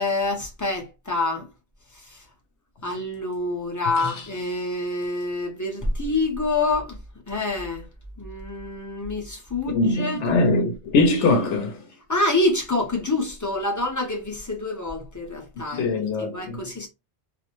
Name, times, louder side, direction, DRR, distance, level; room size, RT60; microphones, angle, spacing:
voice 1, 0.0-1.5 2.8-7.0 7.3-7.8 8.2-10.2 12.1-16.9, left 2 dB, 20° left, 0.5 m, -26 dB
voice 2, 9.7-11.8 15.7-16.6, left 3 dB, 80° left, 0.9 m, -22 dB
2.5 x 2.0 x 2.9 m
omnidirectional pair, 1.2 m